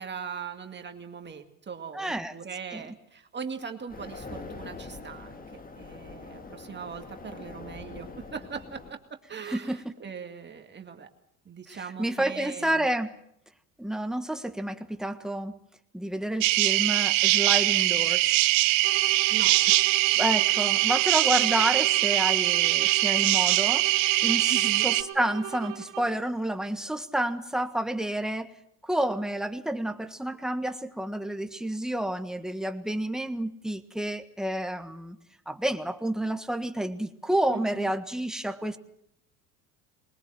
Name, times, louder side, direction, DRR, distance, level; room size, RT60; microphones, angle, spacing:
voice 1, 0.0-11.1 11.5-12.9 19.3-19.6 24.5-24.9 37.5-37.9, right 6 dB, 30° right, 5 dB, 2.1 m, -40 dB
voice 2, 1.9-2.3 2.7-2.8 9.5-9.9 11.7-13.2 13.8-15.6 15.9-18.4 20.1-23.9 24.2-28.5 28.8-35.2 35.5-38.8, right 1 dB, ahead, 7 dB, 1.5 m, -30 dB
sound 1, 3.9-8.9, left 3 dB, 25° left, 2.0 m, -43 dB
sound 2, 16.4-25.0, right 19 dB, 90° right, 0.9 m, -22 dB
sound 3, 18.8-26.3, right 14 dB, 55° right, 1.2 m, -40 dB
21.5 x 20.0 x 7.6 m, 0.75 s
supercardioid pair, 90°, 37 cm